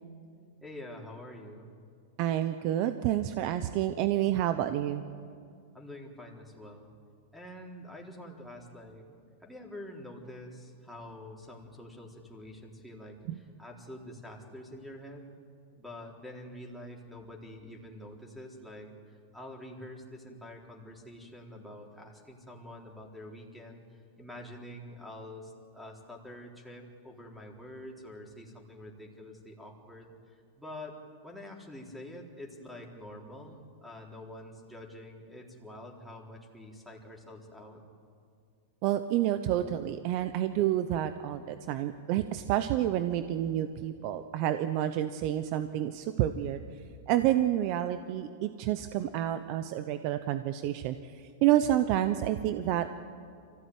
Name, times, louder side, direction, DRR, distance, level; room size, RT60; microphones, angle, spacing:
voice 1, 0.6-1.7 5.7-6.9 7.3-9.1 9.4-15.3 15.8-31.0 31.2-37.8, left 1 dB, ahead, -3 dB, 3.9 m, -46 dB
voice 2, 2.2-5.0 13.3-13.4 38.8-46.6 47.1-52.9, right 12 dB, 50° right, 10 dB, 0.9 m, -29 dB
24.5 x 16.0 x 9.5 m, 2.3 s
hypercardioid pair, 125°, 0 cm